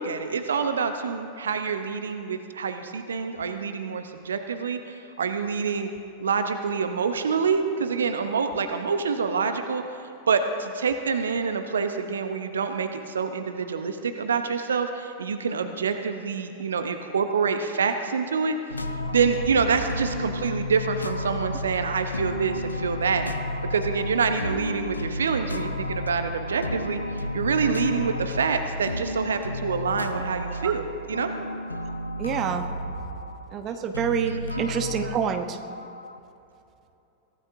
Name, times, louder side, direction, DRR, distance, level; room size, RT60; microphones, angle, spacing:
voice 1, 0.0-5.9 6.2-9.8 10.3-18.6 19.1-23.3 23.7-27.0 27.3-31.3 34.3-34.4, right 5 dB, 70° right, 8 dB, 0.8 m, -26 dB
sound 1, 18.7-36.2, left 1 dB, 85° left, 0.6 m, -32 dB
voice 2, 32.2-32.7 33.5-35.6, right 8 dB, 30° right, 7 dB, 1.0 m, -27 dB
23.5 x 16.0 x 2.8 m, 2.8 s
figure-of-eight pair, 90°, 0 cm